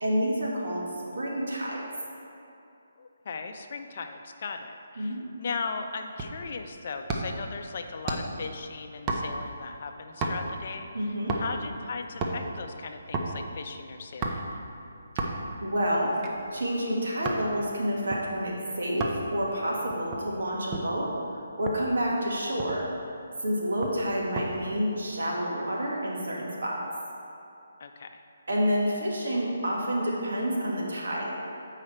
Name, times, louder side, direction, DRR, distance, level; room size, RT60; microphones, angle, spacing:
voice 1, 0.0-0.8 1.2-1.8 5.0-5.2 10.9-11.3 15.6-16.1 16.5-21.1 21.6-22.8 23.4-26.8 28.5-31.3, equal, 75° right, -4 dB, 1.7 m, -29 dB
voice 2, 3.0-14.5 27.8-28.2, left 4 dB, 50° left, 5 dB, 0.5 m, -38 dB
sound 1, 6.2-6.5 7.1-7.5 8.1-8.4 9.1-9.5 10.2-10.6 11.3-11.7 12.0-12.4 13.1-13.4 14.2-14.6 15.2-15.5 16.1-17.5 18.1-18.2 19.0-19.3 19.9-20.9 21.7-21.9 22.3-22.4 22.6-23.0 23.8-24.5 24.8-25.2, right 3 dB, 20° right, 0.6 m, -32 dB
7.8 x 4.9 x 4.3 m, 2.6 s
hypercardioid pair, 160°, 0 cm